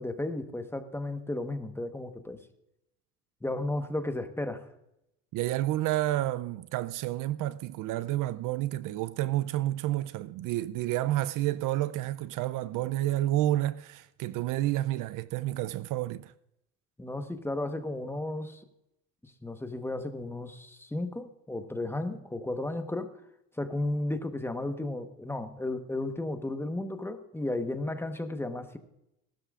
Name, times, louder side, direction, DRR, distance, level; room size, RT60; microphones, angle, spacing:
voice 1, 0.0-2.4 3.4-4.6 17.0-18.6 19.2-23.1 23.6-28.8, left 2 dB, 5° left, 1.1 m, -34 dB
voice 2, 5.3-16.3, right 14 dB, 60° right, 0.5 m, -30 dB
18.5 x 12.5 x 2.5 m
supercardioid pair, 95°, 36 cm